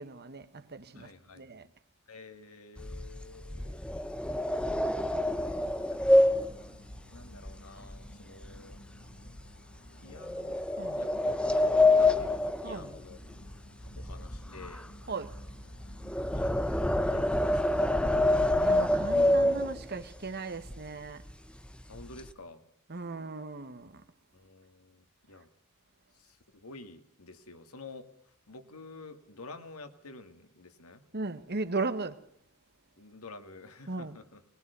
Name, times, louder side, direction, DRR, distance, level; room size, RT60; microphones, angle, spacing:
voice 1, 0.0-1.7 10.8-11.0 12.6-13.0 15.1-15.3 18.6-21.2 22.9-24.0 31.1-32.2 33.9-34.2, right 3 dB, 50° right, 1.4 m, -37 dB
voice 2, 0.9-1.7 2.1-3.8 5.0-5.6 5.9-6.4 7.1-8.8 10.0-10.6 11.0-13.2 13.8-14.9 16.4-17.9 21.9-22.6 24.3-25.5 26.2-28.1 28.5-31.0 33.0-34.4, left 3 dB, 85° left, 2.0 m, -50 dB
sound 1, 2.8-8.1 8.4-8.8 9.3-9.4 10.2-13.5 13.8-20.1 20.7-20.8 21.1-21.3 21.6-22.3, left 1 dB, 5° left, 0.7 m, -27 dB
sound 2, 5.0-16.4, left 1 dB, 55° left, 1.7 m, -54 dB
20.0 x 20.0 x 6.8 m
head